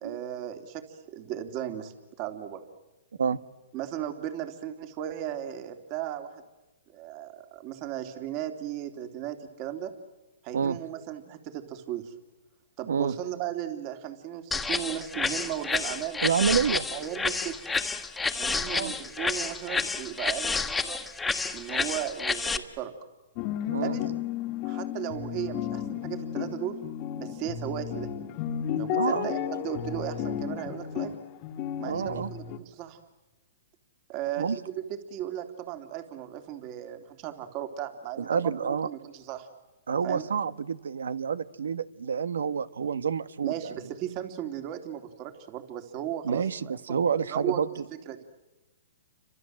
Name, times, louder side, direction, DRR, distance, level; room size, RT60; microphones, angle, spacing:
voice 1, 0.0-2.6 3.7-6.4 6.9-9.9 10.4-12.1 12.8-16.2 16.5-17.6 18.4-21.0 21.5-22.9 23.8-24.1 24.6-26.8 27.2-28.1 28.8-31.2 31.8-33.0 34.1-39.5 40.0-40.2 43.4-47.0 47.3-47.6 48.1-48.2, right 11 dB, 35° right, 7 dB, 3.0 m, -36 dB
sound 1, 14.5-22.6, left 4 dB, 10° left, 1.6 m, -30 dB
voice 2, 16.2-16.9 18.6-18.9 23.7-24.0 28.9-29.3 31.8-32.3 34.4-34.6 38.2-38.9 39.9-43.7 46.2-47.7, right 6 dB, 85° right, 15 dB, 1.4 m, -28 dB
sound 2, 23.4-32.6, left 10 dB, 35° left, 1.7 m, -33 dB
30.0 x 25.5 x 7.8 m, 1.1 s
hypercardioid pair, 140°, 0 cm